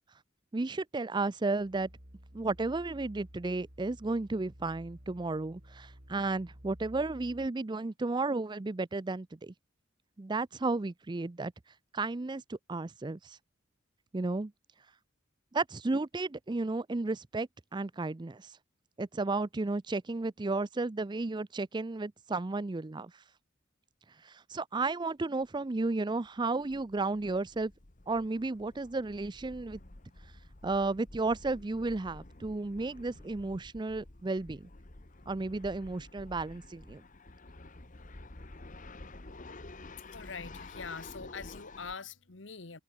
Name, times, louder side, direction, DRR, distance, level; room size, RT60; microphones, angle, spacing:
voice 1, 0.5-1.9 2.3-9.5 10.2-11.5 11.9-13.4 14.1-14.5 15.5-18.5 19.0-23.1 24.3-27.7 28.1-29.8 30.6-34.7 35.3-37.0, right 3 dB, 25° right, 0.5 m, -33 dB
sound 1, 1.5-7.5, equal, 50° right, 4.9 m, -53 dB
sound 2, 25.4-25.6 25.8-25.9 26.3-41.9, left 2 dB, 40° left, 1.5 m, -50 dB
voice 2, 40.1-42.8, left 5 dB, 70° left, 1.5 m, -43 dB
head